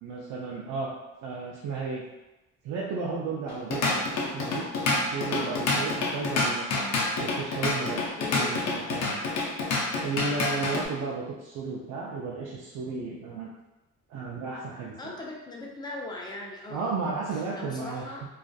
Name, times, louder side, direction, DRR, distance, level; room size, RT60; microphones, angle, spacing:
voice 1, 0.0-0.9 1.2-2.0 2.6-4.7 5.0-8.1 8.3-9.2 10.0-13.5 14.1-15.1 16.7-18.2, right 4 dB, 80° right, -4 dB, 0.5 m, -34 dB
Drum kit / Drum, 3.5-10.9, left 3 dB, 60° left, 0.6 m, -28 dB
voice 2, 5.3-5.7 8.2-8.6 15.0-17.1 17.6-18.3, left 2 dB, 15° left, -2 dB, 0.5 m, -39 dB
2.4 x 2.4 x 2.2 m, 1.0 s
cardioid pair, 90°, 30 cm